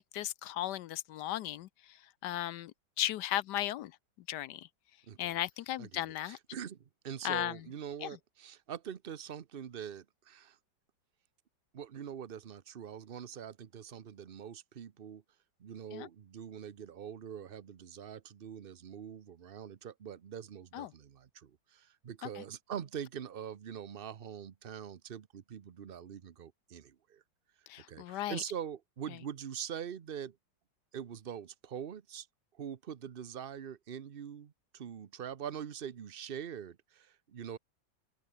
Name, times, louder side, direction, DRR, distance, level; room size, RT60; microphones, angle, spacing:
voice 1, 0.0-2.0 2.2-3.9 4.3-4.7 5.2-6.4 7.2-7.6 8.0-8.2 15.9-16.1 20.7-20.9 22.2-22.4 27.7-28.4, left 13 dB, 70° left, 1.1 m, -36 dB
voice 2, 5.1-5.4 5.8-10.6 11.7-15.2 15.6-27.2 27.9-30.4 30.9-32.3 32.6-37.6, right 8 dB, 55° right, 0.6 m, -44 dB
open air
omnidirectional pair, 2.1 m